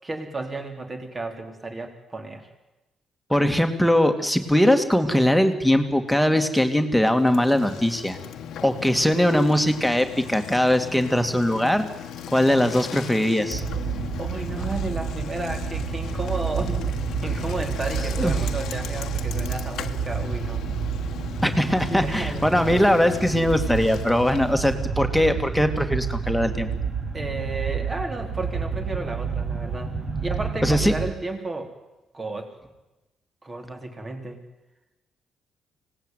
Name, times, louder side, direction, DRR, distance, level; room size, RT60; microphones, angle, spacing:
voice 1, 0.0-2.5 14.2-20.7 21.8-22.5 27.1-29.9 30.2-31.7 32.1-32.5 33.4-34.4, right 2 dB, 30° right, 4 dB, 3.9 m, -33 dB
voice 2, 3.3-8.2 8.6-11.9 12.3-13.6 18.2-18.3 21.4-26.7 30.6-30.9, left 1 dB, ahead, 5 dB, 2.5 m, -21 dB
Bicycle, 7.1-24.7, left 9 dB, 75° left, 1.4 m, -38 dB
sound 1, 13.5-31.1, right 6 dB, 45° right, 5.8 m, -29 dB
25.0 x 18.5 x 9.4 m, 1.0 s
cardioid pair, 90°, 0 cm